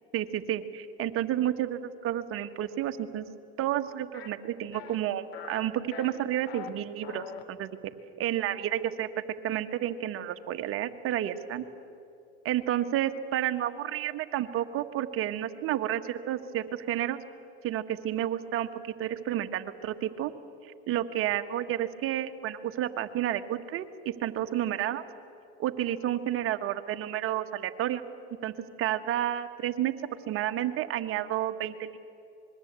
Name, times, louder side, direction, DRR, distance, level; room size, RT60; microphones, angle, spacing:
voice 1, 0.1-7.9 8.2-9.1 9.4-11.6 12.4-17.2 17.6-20.3 20.6-25.0 25.6-28.0 28.4-30.0 30.3-32.0, right 12 dB, 45° right, 8 dB, 1.6 m, -31 dB
sound 1, 4.1-4.3 4.7-5.0 5.3-5.6 5.9-6.7 7.0-7.4, left 8 dB, 90° left, 2.4 m, -43 dB
26.0 x 21.5 x 8.3 m, 2.7 s
hypercardioid pair, 105°, 31 cm